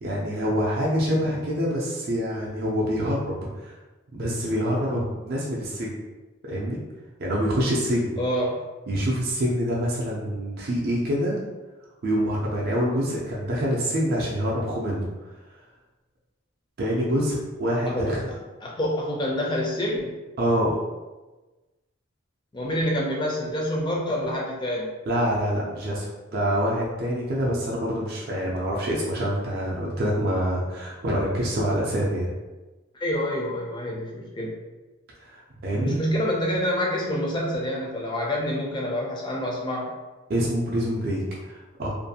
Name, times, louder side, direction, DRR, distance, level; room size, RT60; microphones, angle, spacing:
voice 1, 0.0-3.7 4.1-5.9 6.5-6.8 7.2-8.2 8.9-11.4 12.0-15.1 16.8-18.3 20.4-20.8 25.1-32.3 35.2-36.0 40.3-41.9, equal, 45° right, -4 dB, 0.4 m, -26 dB
voice 2, 8.2-8.6 17.8-18.2 18.6-20.2 22.5-24.9 33.0-34.5 35.8-39.9, equal, 20° left, -2 dB, 0.4 m, -27 dB
2.5 x 2.2 x 2.7 m, 1.2 s
head